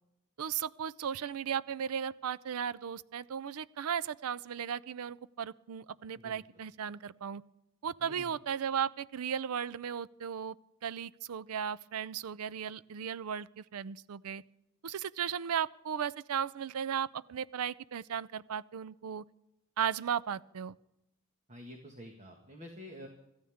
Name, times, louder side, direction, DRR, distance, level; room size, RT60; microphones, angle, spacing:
voice 1, 0.4-7.4 7.8-10.6 10.8-14.4 14.8-19.2 19.8-20.8, right 8 dB, 75° right, 18 dB, 0.4 m, -36 dB
voice 2, 8.0-8.3 21.5-23.1, equal, 30° right, 3 dB, 1.6 m, -48 dB
26.0 x 14.0 x 3.6 m, 0.89 s
head